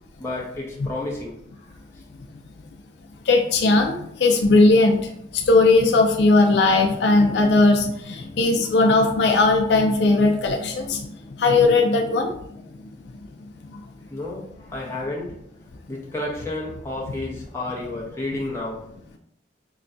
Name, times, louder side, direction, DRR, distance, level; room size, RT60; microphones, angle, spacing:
voice 1, 0.2-1.4 14.1-15.4 15.9-18.9, left 2 dB, 15° left, -4 dB, 0.7 m, -31 dB
voice 2, 3.3-5.0 5.3-11.1 11.4-12.4 13.7-13.8, left 3 dB, 65° left, 3 dB, 0.4 m, -18 dB
5.5 x 2.2 x 2.5 m, 0.72 s
head